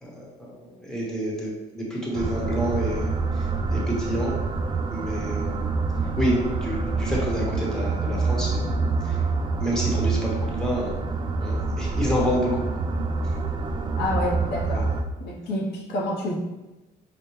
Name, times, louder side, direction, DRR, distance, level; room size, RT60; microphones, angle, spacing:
voice 1, 0.0-3.5 3.7-4.3 4.9-5.7 6.2-8.7 9.0-9.2 9.6-10.9 11.4-12.6 14.7-14.8, equal, 5° left, -4 dB, 1.0 m, -28 dB
sound 1, 2.1-15.0, right 3 dB, 25° right, 0.4 m, -26 dB
voice 2, 14.0-14.9 15.2-16.4, left 1 dB, 70° left, -2 dB, 0.7 m, -28 dB
5.0 x 2.1 x 3.1 m, 1.1 s
cardioid pair, 110°, 17 cm